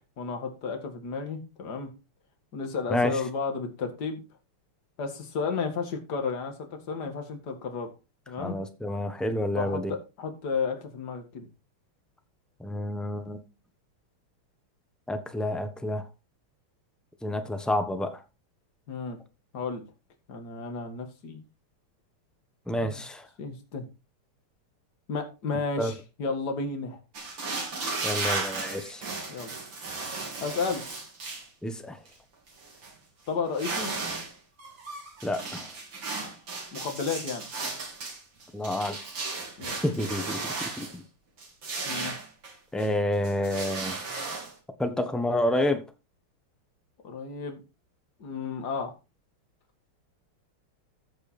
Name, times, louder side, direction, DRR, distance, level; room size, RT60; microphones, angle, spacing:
voice 1, 0.2-1.9 2.5-4.2 5.0-7.9 8.3-8.6 9.5-11.5 18.9-19.2 19.5-19.8 20.3-21.4 22.8-23.0 23.4-23.9 25.1-27.0 29.3-29.5 30.4-30.8 33.3-33.9 36.2-36.3 36.7-37.5 39.6-39.8 41.9-42.2 47.0-47.6 48.2-48.9, left 4 dB, 50° left, 2.4 m, -32 dB
voice 2, 8.4-9.9 12.6-13.4 15.1-16.0 17.2-18.2 22.7-23.2 25.8-25.9 28.0-29.0 31.6-32.0 35.2-35.7 38.5-39.0 39.8-41.0 42.7-44.0 44.8-45.8, left 1 dB, ahead, 0.5 m, -29 dB
sound 1, 27.1-31.5 32.1-32.2 32.5-32.9 33.4-34.3 34.6-41.0 41.4-42.9 43.2-44.5, right 3 dB, 60° right, 3.5 m, -35 dB
14.5 x 5.2 x 4.3 m
omnidirectional pair, 2.3 m